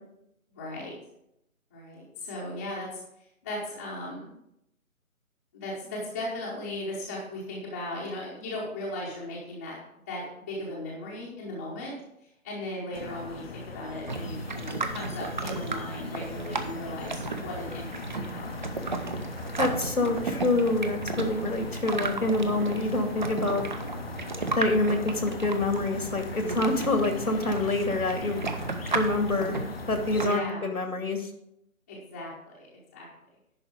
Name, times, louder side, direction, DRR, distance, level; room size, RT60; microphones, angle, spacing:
voice 1, 0.5-0.9 1.7-3.0 3.4-4.3 5.5-9.8 10.1-12.0 12.4-18.7 26.3-26.8 30.2-30.7 31.9-33.1, left 1 dB, 10° left, -7 dB, 0.9 m, -37 dB
sound 1, 12.9-30.3, left 5 dB, 45° left, 0.7 m, -41 dB
sound 2, 14.1-30.4, right 3 dB, 35° right, 0.7 m, -34 dB
voice 2, 19.6-23.6 24.5-28.4 28.9-29.6 29.9-31.3, left 2 dB, 80° left, 5 dB, 2.2 m, -26 dB
10.5 x 4.3 x 6.7 m, 0.82 s
figure-of-eight pair, 150°, 42 cm